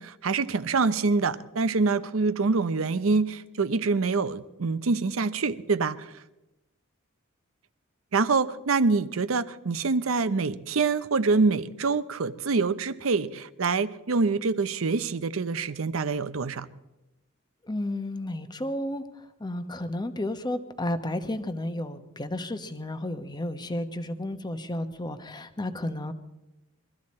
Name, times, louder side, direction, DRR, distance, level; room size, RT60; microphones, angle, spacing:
voice 1, 0.0-6.1 8.1-16.7, right 4 dB, 75° right, 0.7 m, -25 dB
voice 2, 17.6-26.1, left 1 dB, 20° left, 1.0 m, -32 dB
22.5 x 13.5 x 4.3 m
head